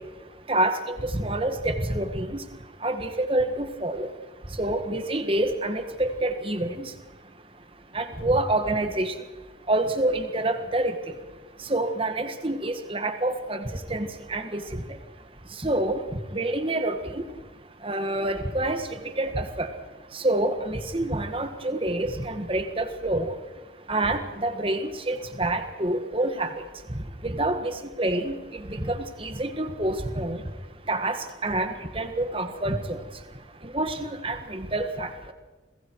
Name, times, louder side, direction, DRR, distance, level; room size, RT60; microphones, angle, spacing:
voice 1, 0.5-2.4 2.8-4.1 4.6-6.9 7.9-9.1 9.7-10.9 11.7-13.6 13.9-14.8 15.6-16.0 16.3-17.2 17.8-18.8 19.2-19.7 20.1-23.3 23.9-26.5 27.2-30.4 30.9-33.0 33.7-35.1, right 1 dB, 30° right, 8 dB, 1.6 m, -27 dB
29.5 x 22.0 x 4.8 m, 1.2 s
head